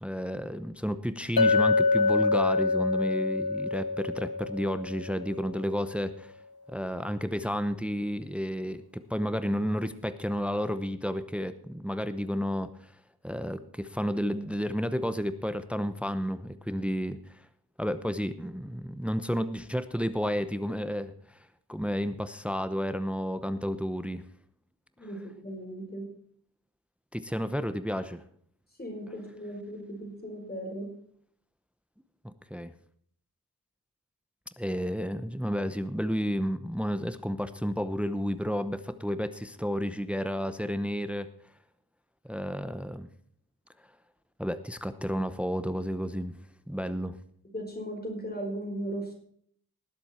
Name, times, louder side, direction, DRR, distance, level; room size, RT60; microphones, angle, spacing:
voice 1, 0.0-6.3 6.7-12.9 13.2-17.5 17.8-21.4 21.7-24.2 27.1-28.2 32.2-32.7 34.6-41.3 42.3-43.1 44.4-46.3 46.7-47.2, equal, 5° right, 12 dB, 0.8 m, -31 dB
Chink clink, 1.4-5.6, left 3 dB, 75° left, 1.5 m, -26 dB
voice 2, 25.0-26.0 28.8-30.9 47.5-49.1, right 1 dB, 25° left, 2 dB, 4.6 m, -37 dB
19.0 x 7.9 x 4.3 m, 0.62 s
wide cardioid pair, 95°, 37 cm